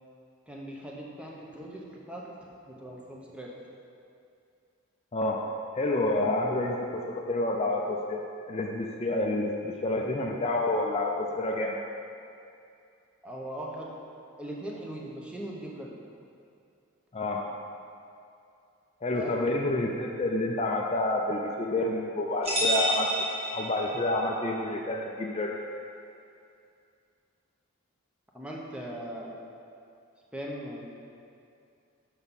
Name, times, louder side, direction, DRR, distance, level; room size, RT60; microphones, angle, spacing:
voice 1, 0.5-3.5 13.2-13.9 14.4-16.0 19.1-19.3 28.3-29.4 30.3-30.8, equal, 5° right, -3 dB, 0.7 m, -40 dB
voice 2, 5.1-5.4 5.8-11.7 17.1-17.4 19.0-23.1 23.5-25.6, left 2 dB, 30° left, 0 dB, 0.4 m, -29 dB
sound 1, 22.4-24.3, equal, 25° right, 1.3 m, -29 dB
7.0 x 5.7 x 4.1 m, 2.5 s
head